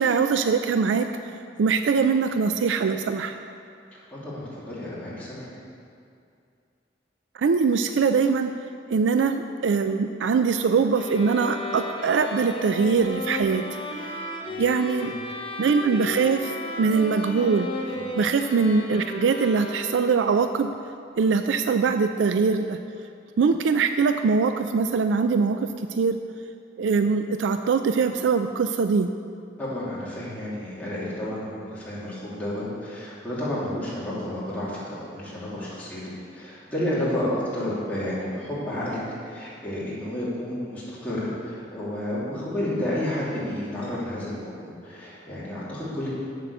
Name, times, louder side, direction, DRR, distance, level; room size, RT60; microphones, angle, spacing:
voice 1, 0.0-3.4 7.3-8.5 8.9-13.6 14.1-14.2 14.6-15.1 15.6-17.7 18.1-20.7 21.2-22.8 23.4-26.2 26.8-29.1, right 5 dB, 85° right, 8 dB, 0.4 m, -22 dB
voice 2, 4.1-5.5 14.4-14.6 15.0-15.1 17.9-18.0 29.6-36.0 36.3-39.0 39.2-46.1, left 1 dB, 10° left, -9 dB, 2.7 m, -31 dB
sound 1, 10.9-20.2, left 2 dB, 30° left, 0.8 m, -34 dB
7.6 x 7.5 x 6.8 m, 2.4 s
head